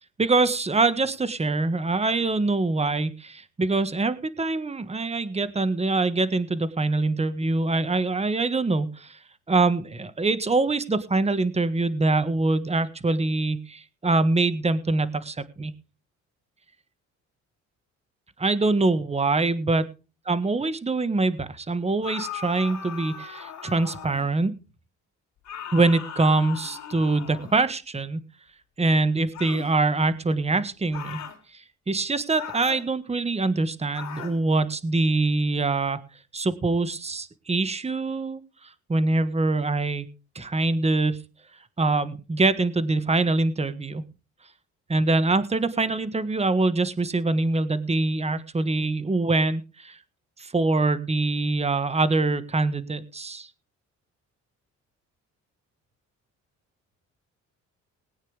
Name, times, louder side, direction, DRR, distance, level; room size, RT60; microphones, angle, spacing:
voice 1, 0.2-9.2 9.5-15.7 18.4-19.9 20.3-24.5 25.7-28.2 28.8-31.2 31.5-36.0 36.3-40.1 40.3-41.2 41.8-44.0 44.9-50.0 50.4-53.5, right 3 dB, 20° right, 14 dB, 1.4 m, -24 dB
sound 1, 22.0-24.3 25.4-27.7 29.3-29.7 30.9-31.4 32.4-32.9 33.9-34.4, left 7 dB, 65° left, 3.0 m, -38 dB
21.0 x 9.0 x 3.4 m, 0.32 s
cardioid pair, 90°, 30 cm